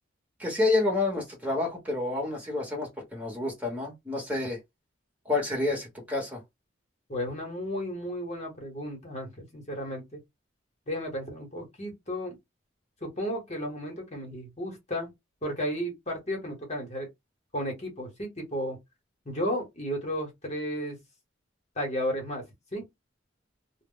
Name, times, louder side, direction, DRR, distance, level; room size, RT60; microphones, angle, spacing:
voice 1, 0.4-4.6 5.2-6.4, left 2 dB, 10° right, 0.9 m, -29 dB
voice 2, 7.1-10.2 10.9-12.4 13.0-15.1 15.4-17.1 17.5-18.8 19.3-21.0 21.8-22.4 22.7-22.8, equal, 35° left, 0.9 m, -33 dB
2.1 x 2.0 x 3.7 m
head